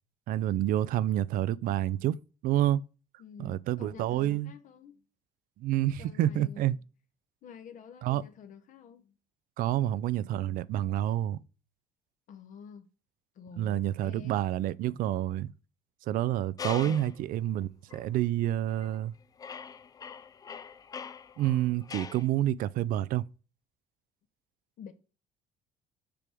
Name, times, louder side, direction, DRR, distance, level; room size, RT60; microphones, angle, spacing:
voice 1, 0.3-2.2 2.4-2.8 3.4-4.5 5.6-6.8 8.0-8.2 9.6-11.4 13.6-15.5 16.1-19.1 21.4-23.3, right 13 dB, 60° right, 0.4 m, -28 dB
voice 2, 3.2-5.0 6.0-6.8 7.4-9.1 12.3-12.9 13.3-14.4 16.8-17.1 24.8-24.9, left 7 dB, 50° left, 0.9 m, -49 dB
sound 1, 16.6-17.2 17.9-18.1 18.7-19.1 19.4-22.3, left 6 dB, 20° left, 0.3 m, -42 dB
6.8 x 6.1 x 3.5 m
cardioid pair, 120°, 16 cm